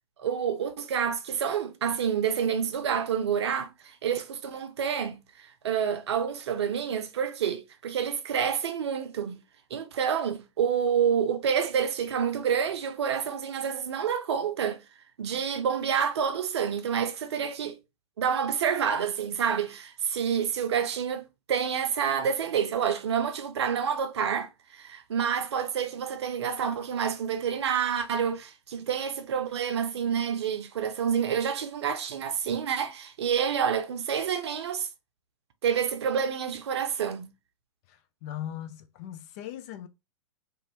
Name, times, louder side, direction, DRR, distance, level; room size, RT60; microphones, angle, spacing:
voice 1, 0.2-9.4 9.7-14.8 15.2-17.8 18.2-34.9 35.6-37.2, right 7 dB, 60° right, 0.6 m, -28 dB
voice 2, 37.9-39.9, left 11 dB, 30° left, 0.3 m, -39 dB
2.6 x 2.3 x 3.0 m
figure-of-eight pair, 105°, 16 cm